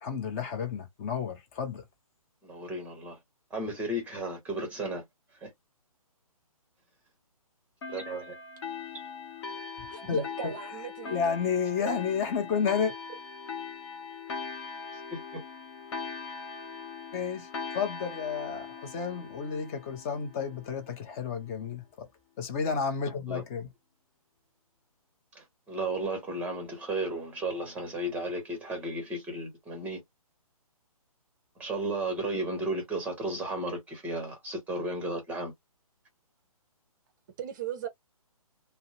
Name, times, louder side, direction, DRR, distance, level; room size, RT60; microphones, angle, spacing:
voice 1, 0.0-1.8 9.9-10.5 11.1-12.9 17.1-17.5 17.7-22.1 22.4-23.7, left 6 dB, 25° left, 0.6 m, -31 dB
voice 2, 2.4-3.2 3.5-5.0 5.4-5.5 7.9-8.3 15.1-15.4 23.3-23.4 25.3-30.0 31.6-35.5, right 2 dB, 10° right, 0.9 m, -34 dB
sound 1, 7.8-20.9, left 5 dB, 45° left, 0.9 m, -41 dB
voice 3, 9.9-11.3 11.8-12.0 37.4-37.9, right 9 dB, 30° right, 0.5 m, -38 dB
2.4 x 2.0 x 2.8 m
figure-of-eight pair, 145°, 19 cm